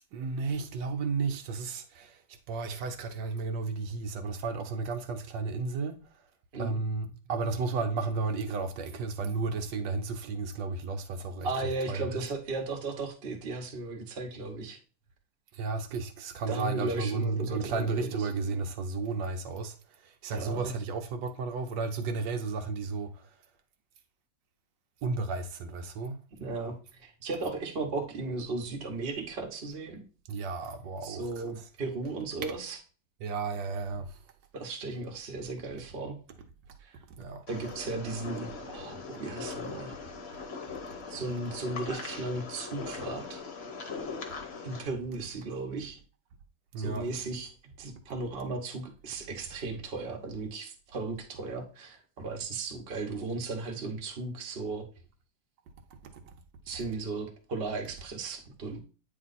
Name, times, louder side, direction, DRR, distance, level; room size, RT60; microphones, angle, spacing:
voice 1, 0.1-2.2 2.5-6.0 6.6-11.5 11.9-12.2 15.5-19.8 20.0-23.2 25.0-26.2 30.3-31.2 32.4-32.5 33.2-34.2 37.1-37.4 46.7-47.1, right 4 dB, 75° right, 1.3 m, -33 dB
voice 2, 11.4-14.8 16.5-18.3 20.3-20.7 26.4-26.7 27.0-30.0 31.0-32.8 34.5-36.2 36.8-37.0 37.5-40.0 41.1-43.4 44.6-46.0 46.8-47.5 47.8-54.9 56.7-58.8, right 3 dB, 40° right, 1.0 m, -36 dB
sound 1, 37.5-44.8, left 4 dB, 45° left, 1.0 m, -40 dB
8.6 x 3.1 x 4.0 m
omnidirectional pair, 2.0 m